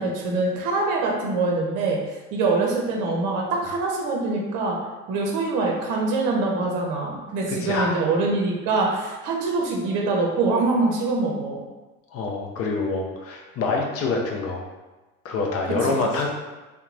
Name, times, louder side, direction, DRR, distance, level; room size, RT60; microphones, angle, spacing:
voice 1, 0.0-2.0 2.3-4.8 5.1-11.6, right 3 dB, 50° right, -1 dB, 0.7 m, -24 dB
voice 2, 7.5-7.9 12.1-14.7 15.2-16.3, left 3 dB, 35° left, 0 dB, 0.5 m, -26 dB
2.8 x 2.3 x 2.5 m, 1.2 s
hypercardioid pair, 70°, 40 cm